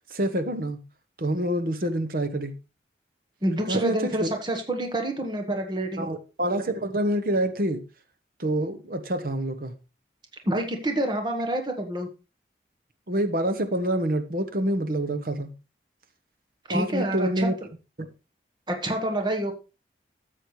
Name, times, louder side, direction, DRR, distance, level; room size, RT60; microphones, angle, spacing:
voice 1, 0.1-0.8 1.2-2.5 3.7-4.3 6.0-7.8 8.4-9.7 13.1-15.5 16.7-17.5, right 1 dB, 55° right, 1.0 m, -26 dB
voice 2, 3.4-6.1 10.4-12.1 16.7-17.5 18.7-19.5, right 1 dB, 25° right, 1.2 m, -27 dB
13.0 x 7.8 x 3.2 m
head